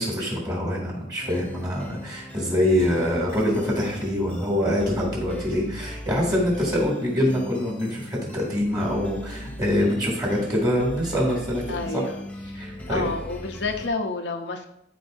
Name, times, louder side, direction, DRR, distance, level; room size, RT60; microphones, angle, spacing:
voice 1, 0.0-11.6 11.9-12.0 12.5-13.1, left 1 dB, 20° right, -3 dB, 2.6 m, -25 dB
sound 1, 1.2-13.9, equal, 5° left, 0.6 m, -39 dB
voice 2, 11.7-12.2 12.9-14.7, left 3 dB, 75° left, 3 dB, 0.8 m, -29 dB
12.5 x 4.7 x 2.7 m, 0.80 s
head